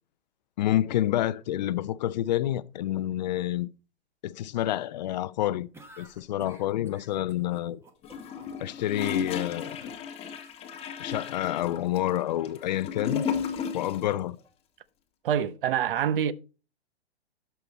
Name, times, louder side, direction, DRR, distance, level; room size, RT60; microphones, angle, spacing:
voice 1, 0.6-3.7 4.2-5.7 6.0-7.8 8.6-9.9 11.0-13.2 13.7-14.4, left 13 dB, 40° left, 0.5 m, -28 dB
sound 1, 5.7-8.7, right 2 dB, 10° right, 1.0 m, -51 dB
Gurgling / Toilet flush, 8.0-14.1 14.4-14.5, left 7 dB, 20° left, 1.0 m, -34 dB
voice 2, 15.2-16.3, right 9 dB, 55° right, 0.7 m, -26 dB
12.0 x 5.7 x 4.0 m
figure-of-eight pair, 120°, 33 cm